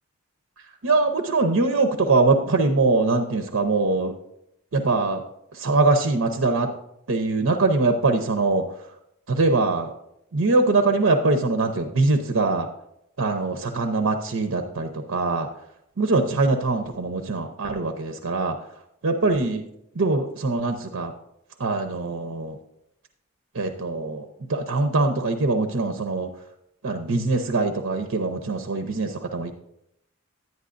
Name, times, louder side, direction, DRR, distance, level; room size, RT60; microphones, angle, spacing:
voice 1, 0.8-4.1 4.7-5.2 5.5-6.7 7.1-8.6 9.3-9.9 10.3-12.7 13.2-15.5 16.0-18.6 19.0-19.6 19.9-21.1 21.6-22.6 23.5-26.3 26.8-29.5, right 3 dB, 75° right, 5 dB, 0.7 m, -22 dB
10.5 x 9.5 x 2.6 m, 0.79 s
head